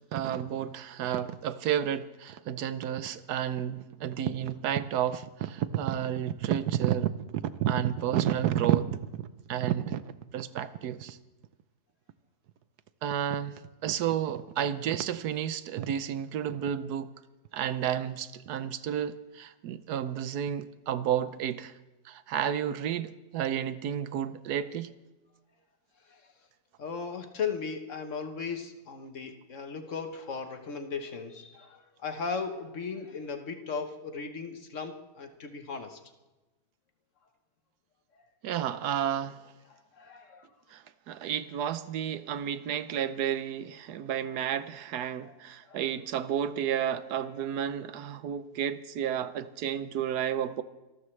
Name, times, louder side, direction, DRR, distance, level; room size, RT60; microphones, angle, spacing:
voice 1, 0.1-7.1 7.6-10.0 10.3-11.2 13.0-13.5 13.8-17.1 17.5-21.7 22.1-24.9 38.4-39.4 40.7-50.6, right 10 dB, 80° right, 1.3 m, -31 dB
voice 2, 26.8-36.0 38.2-38.3 39.7-40.5 45.2-45.4 45.7-45.8, left 5 dB, 55° left, 1.3 m, -37 dB
25.0 x 13.0 x 3.2 m
omnidirectional pair, 1.7 m